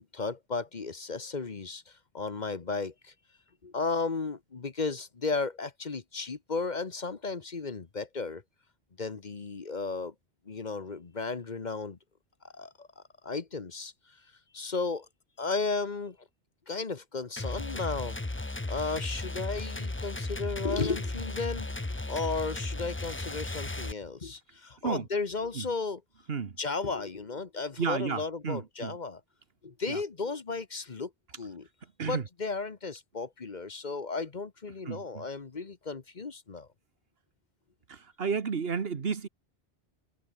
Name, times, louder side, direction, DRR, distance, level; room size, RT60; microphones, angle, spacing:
voice 1, 0.0-3.1 3.6-8.4 9.0-10.1 10.5-12.0 12.4-14.2 14.5-15.1 15.4-16.2 16.7-18.2 18.7-26.0 26.6-29.2 29.6-31.1 31.4-31.7 32.0-36.7, left 4 dB, 45° left, 1.2 m, -34 dB
sound 1, 17.4-23.9, left 2 dB, 15° left, 0.7 m, -35 dB
voice 2, 27.8-29.0 29.9-30.0 32.0-32.3 34.8-35.3 37.9-39.3, right 6 dB, 65° right, 1.5 m, -32 dB
omnidirectional pair, 1.1 m